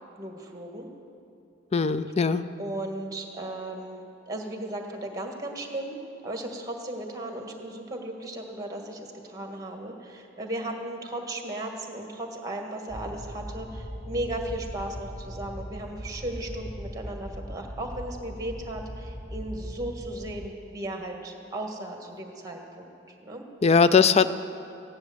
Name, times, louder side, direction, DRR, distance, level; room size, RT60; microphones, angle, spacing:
voice 1, 0.2-0.9 2.6-6.0 6.2-23.4, right 1 dB, 20° right, 3 dB, 1.7 m, -36 dB
voice 2, 1.7-2.4 23.6-24.3, left 5 dB, 35° left, 13 dB, 0.4 m, -20 dB
sound 1, 12.9-20.5, equal, 15° left, 0.9 m, -39 dB
16.0 x 10.5 x 7.9 m, 2.6 s
head